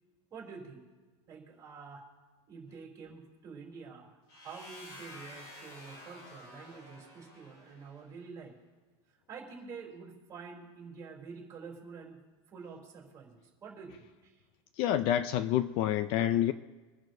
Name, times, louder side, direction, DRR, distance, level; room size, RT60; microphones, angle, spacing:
voice 1, 0.3-0.8 1.3-2.0 2.5-8.5 9.3-12.2 12.5-14.4, right 5 dB, 20° right, -1 dB, 3.3 m, -48 dB
sound 1, 4.3-8.1, left 1 dB, 60° left, 4.8 m, -51 dB
voice 2, 14.8-16.5, left 11 dB, 40° left, 13 dB, 0.4 m, -28 dB
25.0 x 10.5 x 2.7 m, 1.3 s
supercardioid pair, 165°, 15 cm